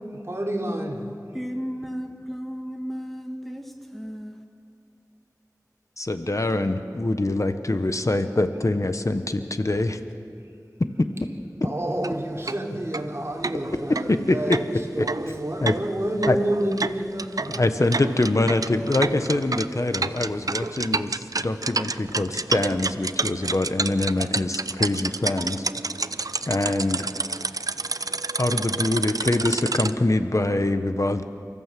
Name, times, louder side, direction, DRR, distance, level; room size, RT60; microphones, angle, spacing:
voice 1, 0.1-1.1 11.6-14.7 14.9-17.6, right 1 dB, 40° right, 0 dB, 3.4 m, -29 dB
voice 2, 1.3-4.4, equal, 5° left, 3 dB, 1.5 m, -34 dB
voice 3, 6.0-10.0 14.1-14.4 15.0-15.1 15.6-15.7 16.2-16.4 17.5-25.6 26.5-27.1 28.4-31.2, left 2 dB, 55° left, 8 dB, 1.1 m, -24 dB
sound 1, 12.0-12.1 12.5-12.6 12.9-13.0 13.4-29.9, right 3 dB, 65° right, 0.6 m, -29 dB
30.0 x 15.0 x 7.6 m, 2.4 s
wide cardioid pair, 50°, 7 cm